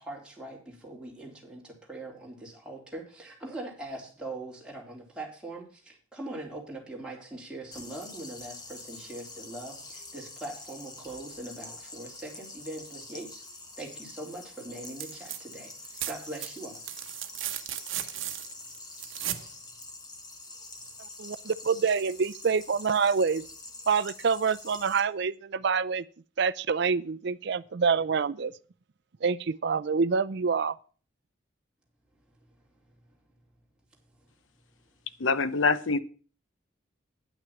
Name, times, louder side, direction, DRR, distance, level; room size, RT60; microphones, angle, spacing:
voice 1, 0.0-13.4 13.8-16.8 34.2-34.3, right 2 dB, 5° right, 2.9 m, -42 dB
sound 1, 7.7-25.0, left 2 dB, 20° left, 1.4 m, -46 dB
sound 2, 14.8-15.4 15.7-19.5 21.1-21.2, right 13 dB, 75° right, 0.9 m, -36 dB
voice 2, 21.2-23.4 23.9-26.0 26.4-28.5 29.2-30.7, right 5 dB, 55° right, 0.5 m, -26 dB
voice 3, 35.2-36.0, left 4 dB, 70° left, 0.7 m, -24 dB
9.2 x 6.0 x 7.0 m
head